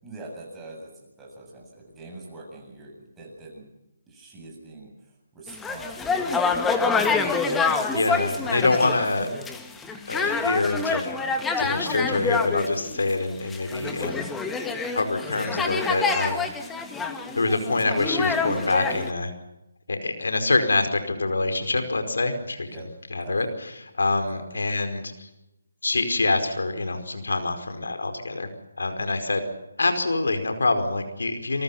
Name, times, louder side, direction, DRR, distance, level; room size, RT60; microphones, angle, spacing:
voice 1, 0.0-3.7 4.1-7.4 8.3-9.3 22.7-22.9 23.2-23.5 24.3-24.6, right 2 dB, 10° right, -1 dB, 8.0 m, -44 dB
village int ext busy walla voices Uganda, 5.5-19.1, left 4 dB, 10° left, 1.9 m, -27 dB
voice 2, 7.9-9.3 10.1-11.1 11.6-14.2 14.9-16.4 17.3-19.3 19.9-22.8 23.1-23.5 24.0-25.3 25.8-28.5 28.8-29.4 29.8-31.6, left 3 dB, 80° left, 8 dB, 4.9 m, -25 dB
27.5 x 23.5 x 5.8 m, 0.90 s
figure-of-eight pair, 155°, 0 cm